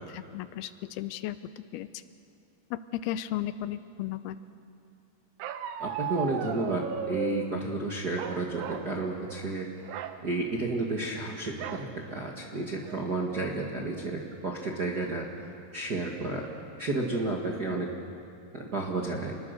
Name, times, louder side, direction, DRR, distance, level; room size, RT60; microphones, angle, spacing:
voice 1, 0.1-1.4 1.7-1.9 2.7-4.4, left 12 dB, 90° left, 13 dB, 2.7 m, -34 dB
Bark, 5.4-7.5 8.2-8.9 9.2-9.5 9.8-10.2 11.6-11.9 12.4-12.5 12.8-13.3, right 9 dB, 75° right, 2.4 m, -36 dB
voice 2, 5.8-9.7 10.2-15.3 15.7-16.5 16.8-17.9 18.5-19.4, right 2 dB, 45° right, -2 dB, 1.2 m, -31 dB
28.0 x 21.0 x 6.7 m, 2.5 s
omnidirectional pair, 4.4 m